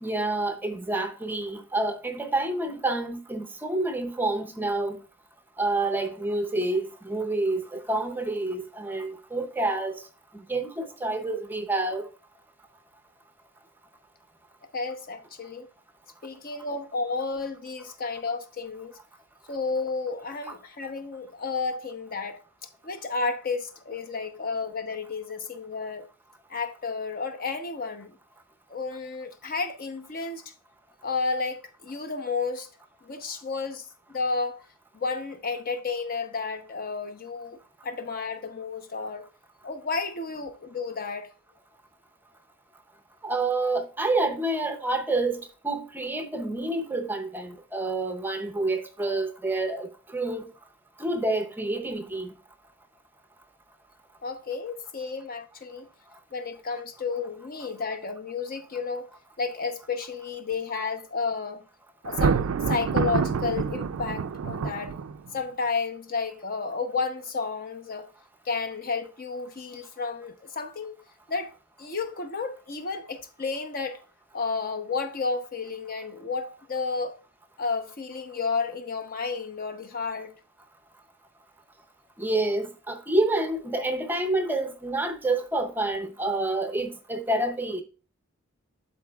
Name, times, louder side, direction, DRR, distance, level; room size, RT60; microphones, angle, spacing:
voice 1, 0.0-5.0 5.6-10.1 10.3-12.1 20.5-20.6 43.2-50.5 51.0-52.3 82.2-87.8, right 2 dB, 10° right, 0.6 m, -28 dB
voice 2, 14.7-15.7 16.2-19.0 19.5-22.4 22.8-26.1 26.5-28.2 28.7-30.5 31.0-32.7 33.0-34.6 34.9-39.2 39.6-41.3 54.2-55.9 56.3-59.1 59.4-61.7 62.0-64.9 65.3-68.1 68.4-71.0 71.3-71.5 71.8-74.0 74.3-77.2 77.6-80.4, left 4 dB, 45° left, 0.8 m, -32 dB
Thunder, 62.0-65.4, right 6 dB, 85° right, 0.4 m, -27 dB
12.0 x 4.1 x 2.3 m
head